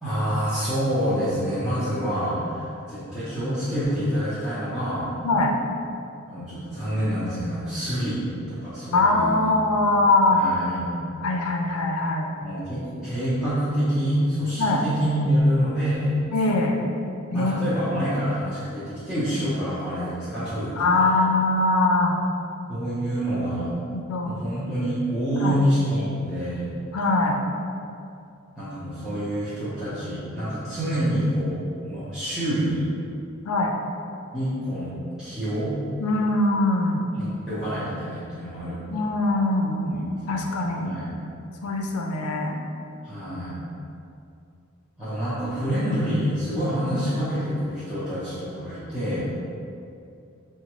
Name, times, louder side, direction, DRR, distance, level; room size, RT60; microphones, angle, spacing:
voice 1, 0.0-5.1 6.3-8.2 8.5-9.5 10.4-10.9 12.4-16.1 17.3-21.2 22.7-23.7 24.2-26.7 28.6-32.9 34.3-34.9 35.2-35.8 37.1-38.8 39.8-40.5 40.8-41.1 43.0-43.6 45.0-49.2, equal, ahead, -15 dB, 0.7 m, -27 dB
voice 2, 8.9-10.5 11.2-12.3 14.6-14.8 16.3-16.8 17.3-17.7 20.8-22.1 23.9-24.3 25.4-25.6 26.9-27.4 33.5-33.8 36.0-37.1 38.9-40.9 41.6-42.6 46.9-47.1, left 2 dB, 90° left, 1 dB, 0.4 m, -22 dB
5.0 x 2.3 x 3.0 m, 2.6 s
head